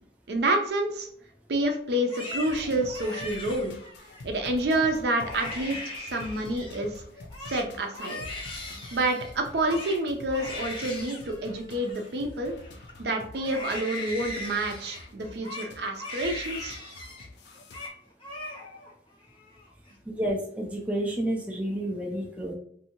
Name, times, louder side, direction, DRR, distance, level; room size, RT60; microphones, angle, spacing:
voice 1, 0.3-1.1 1.5-3.7 4.2-7.0 7.5-8.2 8.9-12.6 13.0-16.8, right 1 dB, 65° right, 4 dB, 0.5 m, -28 dB
Crying sobbing, 1.9-4.2 4.7-4.9 5.1-6.8 7.2-12.9 13.3-17.3 17.5-17.9 18.2-18.9 19.3-19.9, left 2 dB, 30° left, 0.6 m, -39 dB
sound 1, 2.5-17.9, left 2 dB, 70° left, 0.4 m, -47 dB
voice 2, 20.1-22.5, right 1 dB, 5° right, -1 dB, 0.4 m, -30 dB
2.6 x 2.6 x 2.8 m, 0.65 s
head